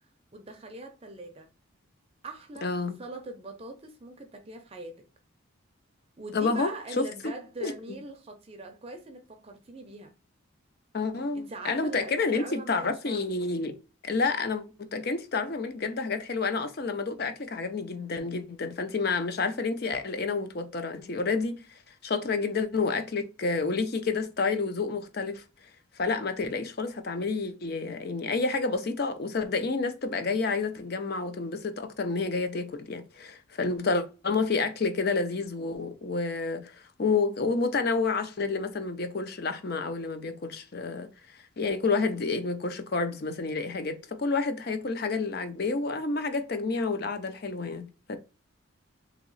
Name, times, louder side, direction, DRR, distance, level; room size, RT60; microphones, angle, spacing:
voice 1, 0.0-1.5 2.2-5.0 6.2-10.1 11.3-13.3, right 2 dB, 30° right, 0.5 m, -42 dB
voice 2, 2.6-3.0 6.3-6.7 7.0-7.3 7.6-7.7 10.9-13.8 14.0-25.4 26.0-41.1 41.6-48.2, left 4 dB, 50° left, 0.5 m, -29 dB
2.9 x 2.9 x 3.9 m
head